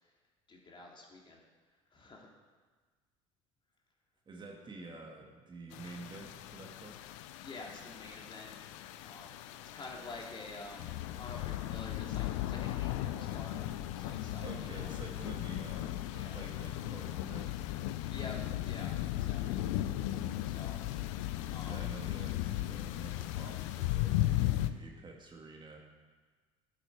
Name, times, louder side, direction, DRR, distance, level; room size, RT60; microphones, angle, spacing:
voice 1, 0.5-1.4 1.9-2.3 7.4-8.5 9.0-9.4 9.7-13.6 13.9-14.9 16.1-16.4 18.0-19.6 20.4-20.8 21.5-21.8, left 3 dB, 30° left, -1 dB, 2.7 m, -48 dB
voice 2, 4.3-7.0 14.4-17.6 21.6-26.0, right 3 dB, 30° right, 1 dB, 2.0 m, -49 dB
sound 1, 5.7-24.7, left 14 dB, 70° left, 0.6 m, -36 dB
12.0 x 9.1 x 4.7 m, 1.4 s
hypercardioid pair, 70°, 17 cm